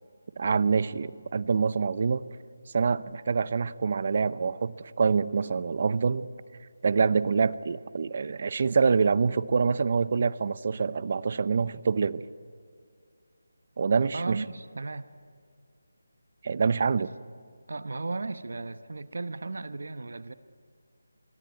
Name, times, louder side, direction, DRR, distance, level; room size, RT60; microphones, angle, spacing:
voice 1, 0.4-2.3 2.7-6.3 6.8-12.2 13.8-14.4 16.4-17.1, right 5 dB, 35° right, 18 dB, 0.6 m, -26 dB
voice 2, 14.1-15.1 17.7-20.3, right 3 dB, 60° right, 13 dB, 1.0 m, -35 dB
24.0 x 23.5 x 9.5 m, 2.2 s
figure-of-eight pair, 175°, 0 cm